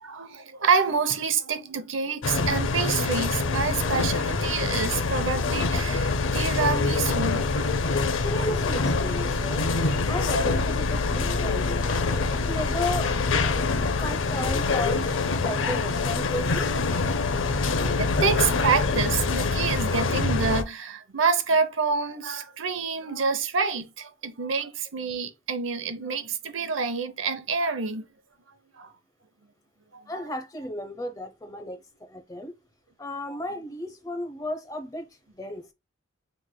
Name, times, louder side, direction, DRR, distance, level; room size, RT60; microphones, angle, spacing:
voice 1, 0.0-7.5 13.8-14.0 17.8-28.1 28.8-28.9 29.9-30.3 33.3-33.4, right 5 dB, 75° right, 0.7 m, -27 dB
sound 1, 2.2-20.6, left 3 dB, 70° left, 0.5 m, -25 dB
voice 2, 8.2-9.7 10.1-11.7 12.1-13.1 14.0-15.0 15.4-16.7 30.1-31.8 32.1-32.5 33.0-35.1 35.4-35.6, left 1 dB, 15° left, 0.6 m, -34 dB
5.8 x 3.2 x 2.2 m
head